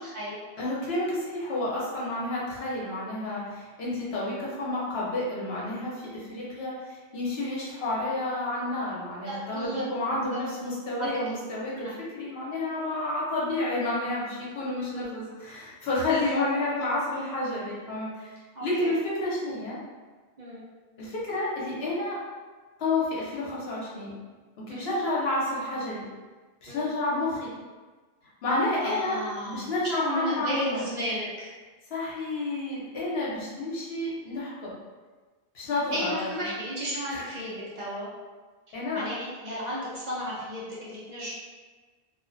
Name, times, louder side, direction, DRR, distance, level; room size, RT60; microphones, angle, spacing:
voice 1, 0.0-0.4 9.2-9.8 10.3-10.4 11.0-11.1 11.7-11.9 14.8-15.1 16.3-16.4 18.6-18.9 20.4-20.6 24.7-24.9 26.7-26.8 28.8-29.7 30.0-31.5 35.9-38.1 38.9-41.3, equal, 50° right, -7 dB, 0.6 m, -34 dB
voice 2, 0.6-18.3 18.6-19.8 21.0-22.2 22.8-24.1 24.6-26.0 26.6-27.5 28.4-29.2 29.4-30.8 31.9-34.7 35.5-36.5 37.1-37.2 38.7-39.2, left 2 dB, 75° left, -6 dB, 1.0 m, -30 dB
2.4 x 2.1 x 2.5 m, 1.3 s
omnidirectional pair, 1.0 m